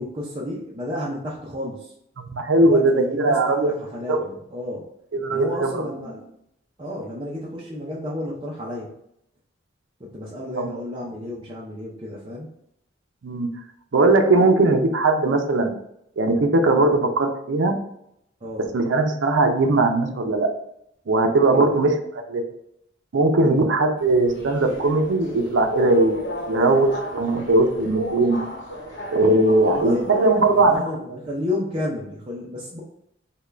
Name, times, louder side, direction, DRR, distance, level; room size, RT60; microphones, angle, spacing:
voice 1, 0.0-1.9 2.6-4.8 5.3-6.2 6.8-8.9 10.1-12.5 18.4-18.7 21.5-21.7 23.4-23.6 29.7-32.8, left 1 dB, 25° right, -5 dB, 0.5 m, -31 dB
voice 2, 2.2-3.7 4.1-4.2 5.1-5.8 10.6-10.7 13.2-13.5 13.9-15.7 16.2-17.7 18.7-20.5 21.1-21.9 22.3-22.4 23.1-26.2 26.5-28.4 29.1-30.8 31.1-31.2, right 2 dB, 75° right, 4 dB, 0.5 m, -19 dB
Subway metro underground, 24.0-30.8, equal, 65° left, 1.0 m, -33 dB
3.6 x 2.2 x 3.2 m, 0.76 s
head